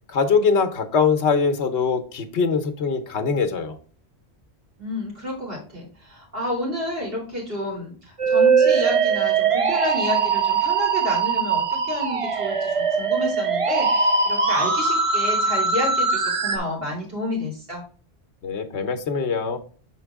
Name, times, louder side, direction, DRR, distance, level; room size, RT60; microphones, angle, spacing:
voice 1, 0.1-3.8 18.4-19.6, left 5 dB, 90° left, 8 dB, 1.1 m, -22 dB
voice 2, 4.8-17.8, left 1 dB, 60° right, -3 dB, 3.2 m, -30 dB
Musical instrument, 8.2-16.6, right 5 dB, 40° right, 0.6 m, -21 dB
6.5 x 4.6 x 3.5 m, 0.42 s
omnidirectional pair, 1.1 m